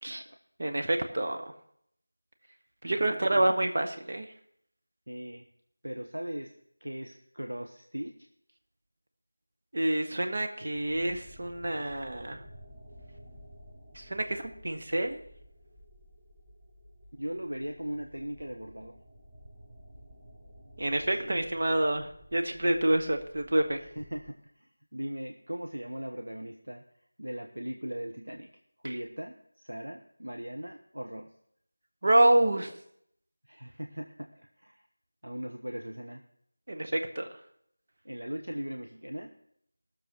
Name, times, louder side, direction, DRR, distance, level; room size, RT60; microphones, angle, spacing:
voice 1, 0.1-0.4 3.0-3.5 5.1-5.5 5.8-6.5 6.8-8.3 17.1-19.0 21.2-21.3 23.8-26.8 27.2-28.5 28.8-31.3 33.4-34.8 35.2-36.2 38.0-39.4, equal, 80° right, 3 dB, 1.2 m, -39 dB
voice 2, 0.6-1.4 2.8-4.3 9.7-12.4 13.9-15.2 20.8-23.8 28.8-28.9 32.0-32.7 36.7-37.3, right 1 dB, 50° right, 5 dB, 1.4 m, -27 dB
sound 1, 10.7-24.3, equal, 25° right, 4.1 m, -53 dB
17.0 x 7.0 x 6.1 m, 0.70 s
figure-of-eight pair, 170°, 0 cm